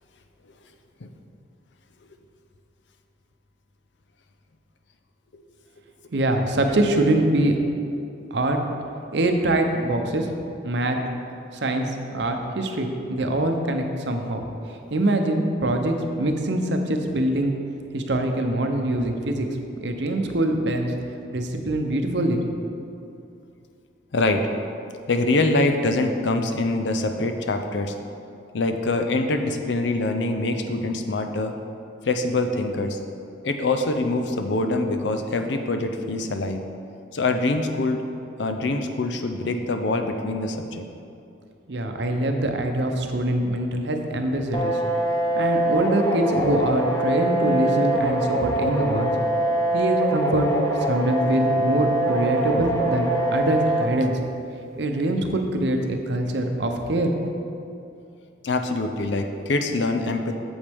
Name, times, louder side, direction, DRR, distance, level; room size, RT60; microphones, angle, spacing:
voice 1, 6.1-7.6 8.3-8.6 9.1-10.3 10.6-11.0 11.5-14.4 14.7-17.5 17.9-19.5 19.8-20.9 21.3-22.4 41.7-44.8 45.4-49.1 49.7-50.5 50.8-54.2 54.8-57.1, right 1 dB, 65° right, 4 dB, 0.7 m, -24 dB
voice 2, 24.1-24.5 25.1-27.9 28.5-31.5 32.0-33.0 33.4-36.6 37.1-38.0 38.4-40.8 48.7-48.8 58.4-60.4, left 2 dB, 70° left, 6 dB, 0.6 m, -24 dB
sound 1, 44.5-53.9, right 1 dB, 15° left, 0.7 m, -23 dB
8.3 x 7.2 x 3.5 m, 2.6 s
head